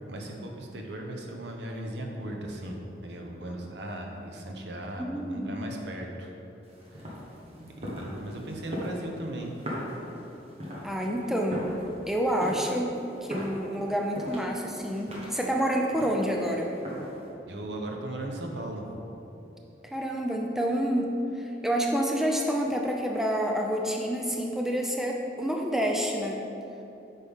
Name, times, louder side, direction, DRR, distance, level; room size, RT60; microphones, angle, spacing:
voice 1, 0.1-6.3 6.9-7.2 7.6-9.6 17.5-18.9, right 1 dB, 80° right, 1 dB, 0.9 m, -37 dB
voice 2, 5.0-5.5 10.8-11.7 12.1-16.7 19.8-26.4, equal, ahead, 0 dB, 0.5 m, -28 dB
sound 1, 6.6-17.3, equal, 35° right, 1.2 m, -40 dB
8.1 x 5.6 x 3.6 m, 2.9 s
head